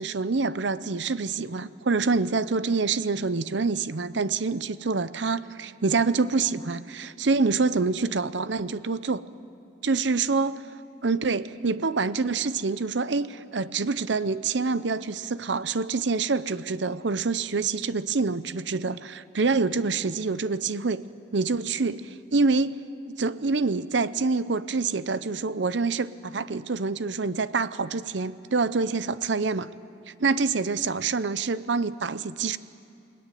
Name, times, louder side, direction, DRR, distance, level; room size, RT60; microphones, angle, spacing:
voice 1, 0.0-9.2 9.8-10.6 11.0-21.0 21.3-22.8 23.0-29.7 30.2-32.6, right 4 dB, 70° right, 15 dB, 0.7 m, -26 dB
30.0 x 20.5 x 9.2 m, 2.5 s
head